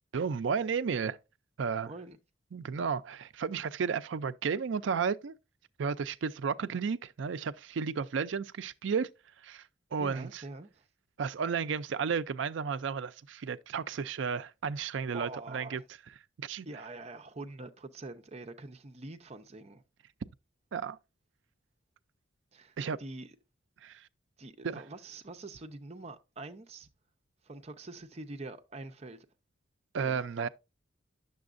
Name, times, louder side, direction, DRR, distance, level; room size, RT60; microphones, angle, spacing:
voice 1, 0.1-1.2 1.6-1.9 2.5-5.3 5.8-9.1 9.4-10.4 11.2-15.8 16.4-16.7 20.7-21.0 22.8-23.0 23.8-24.1 24.6-24.8 29.9-30.5, right 6 dB, 70° right, 0.4 m, -33 dB
voice 2, 1.9-2.2 10.0-10.8 15.1-15.8 16.7-19.8 22.5-23.3 24.4-26.9 27.4-29.3 30.0-30.5, right 2 dB, 35° right, 0.7 m, -45 dB
9.4 x 6.9 x 2.5 m
head